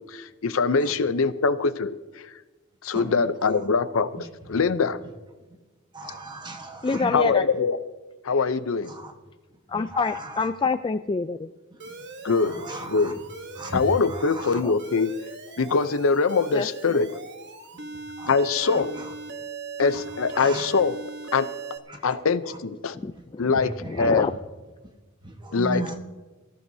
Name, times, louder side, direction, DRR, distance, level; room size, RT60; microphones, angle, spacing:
voice 1, 0.1-2.0 2.8-4.1 4.5-5.0 7.1-7.8 8.2-8.9 12.2-12.5 12.8-13.1 13.7-15.1 15.6-17.2 18.3-18.9 19.8-21.0 21.3-21.5 22.0-23.0 23.4-24.3 25.5-25.8, left 4 dB, 75° left, 12 dB, 0.6 m, -23 dB
voice 2, 5.9-7.1 8.9-9.1 9.9-10.2 12.4-13.1 13.6-13.8 14.1-14.6 18.2-18.3 18.7-18.8 20.4-20.7 21.9-22.2 23.8-24.1 25.4-26.0, right 1 dB, 20° right, 4 dB, 1.3 m, -35 dB
voice 3, 6.8-7.6 9.7-11.5 14.6-14.7 16.5-17.0 22.9-23.5 23.9-24.3, left 4 dB, 25° left, 9 dB, 0.3 m, -27 dB
Alarm, 11.8-21.8, right 4 dB, 60° right, 1.2 m, -39 dB
24.0 x 14.5 x 2.7 m, 1.2 s
head